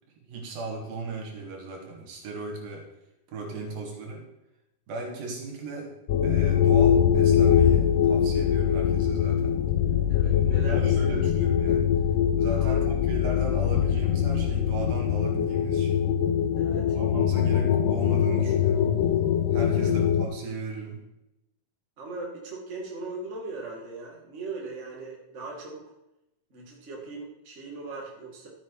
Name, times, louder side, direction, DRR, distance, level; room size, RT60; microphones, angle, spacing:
voice 1, 0.2-2.9 3.3-4.2 4.9-6.0 6.2-9.6 10.2-11.9 12.4-16.0 16.8-18.9 19.5-21.0, right 3 dB, 90° right, 0 dB, 3.7 m, -36 dB
sound 1, 6.1-20.3, left 9 dB, 80° left, 1.5 m, -23 dB
voice 2, 10.1-11.3 12.5-12.9 16.6-17.0 19.8-20.0 22.0-25.8 26.5-28.5, right 3 dB, 25° right, -2 dB, 2.0 m, -39 dB
13.0 x 7.5 x 4.7 m, 0.89 s
omnidirectional pair, 4.0 m